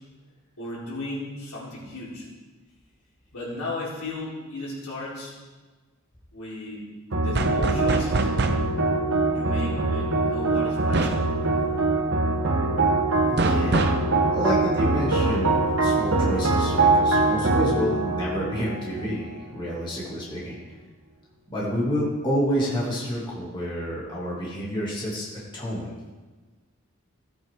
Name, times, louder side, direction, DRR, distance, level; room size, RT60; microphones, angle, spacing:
voice 1, 0.6-2.3 3.3-5.4 6.3-6.9 7.2-8.3 9.3-11.2 13.3-13.4, left 2 dB, 90° left, -6 dB, 4.1 m, -35 dB
sound 1, 7.1-19.6, right 2 dB, 75° right, 1.3 m, -23 dB
sound 2, 7.4-8.7 10.9-11.3 13.4-14.1, right 3 dB, 50° right, 0.7 m, -24 dB
voice 2, 13.3-14.1 14.3-20.6 21.5-25.3 25.5-25.9, equal, 20° left, -6 dB, 2.5 m, -29 dB
16.0 x 8.8 x 3.7 m, 1.3 s
head